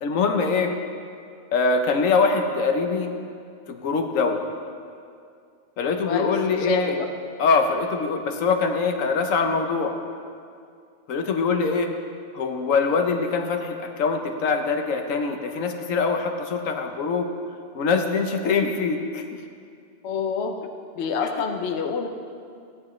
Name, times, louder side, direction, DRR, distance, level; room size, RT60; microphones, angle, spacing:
voice 1, 0.0-0.7 1.5-3.1 3.7-4.4 5.8-7.0 7.4-9.9 11.1-11.9 12.3-17.3 17.7-19.2, left 4 dB, 85° left, 4 dB, 1.2 m, -23 dB
voice 2, 6.6-7.1 20.0-20.6 20.9-22.1, left 5 dB, 60° left, 3 dB, 1.0 m, -27 dB
15.5 x 9.9 x 3.1 m, 2.3 s
omnidirectional pair, 1.3 m